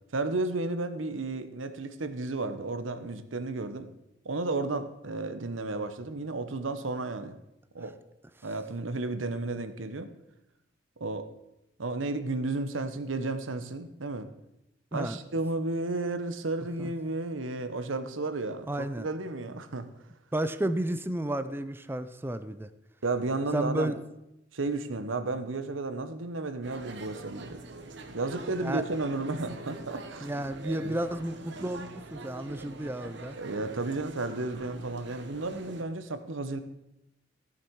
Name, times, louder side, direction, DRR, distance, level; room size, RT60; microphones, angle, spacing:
voice 1, 0.1-3.9 4.2-7.4 7.7-7.9 8.4-10.1 11.0-11.3 11.8-14.3 14.9-19.9 23.0-23.9 24.5-27.6 28.1-30.3 30.6-30.9 33.4-36.6, right 2 dB, 90° right, 10 dB, 1.0 m, -33 dB
voice 2, 18.7-19.1 20.3-22.7 23.5-24.0 28.6-28.8 30.2-33.4, right 1 dB, 10° right, 12 dB, 0.5 m, -32 dB
sound 1, 26.6-35.8, right 2 dB, 65° right, 1.1 m, -45 dB
14.5 x 7.1 x 4.7 m, 0.87 s
head